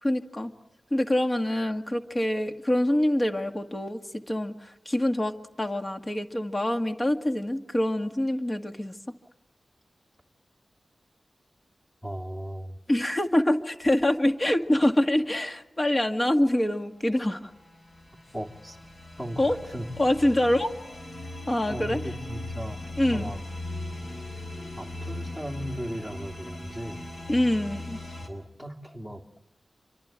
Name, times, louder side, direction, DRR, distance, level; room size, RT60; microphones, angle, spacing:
voice 1, 0.0-0.5 0.9-9.0 12.9-17.5 19.4-19.6 20.0-20.7 21.5-22.0 23.0-23.3 27.3-28.0, left 1 dB, 25° left, 6 dB, 1.9 m, -25 dB
voice 2, 12.0-12.8 18.3-18.8 19.2-20.1 21.7-22.8 23.0-23.4 24.8-27.1 28.2-29.2, equal, 10° left, 2 dB, 2.7 m, -37 dB
sound 1, 17.3-28.3, left 2 dB, 50° left, 6.5 m, -39 dB
27.5 x 24.5 x 8.7 m, 0.91 s
wide cardioid pair, 95°, 0 cm